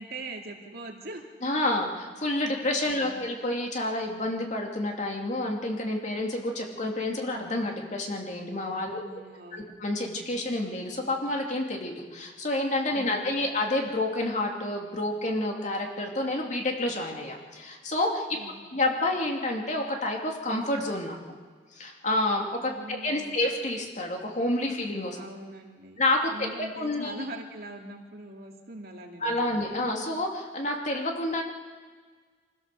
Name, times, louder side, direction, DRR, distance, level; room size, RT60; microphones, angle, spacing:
voice 1, 0.0-1.3 2.8-3.2 8.8-9.7 12.9-13.5 18.4-18.8 22.7-23.4 25.1-26.0 26.3-29.6, right 2 dB, 60° right, 1 dB, 2.5 m, -42 dB
voice 2, 1.4-9.0 9.5-18.4 18.7-21.2 21.8-25.2 26.0-27.2 29.2-31.4, left 1 dB, 45° left, 1 dB, 2.6 m, -29 dB
25.0 x 15.5 x 6.9 m, 1.5 s
head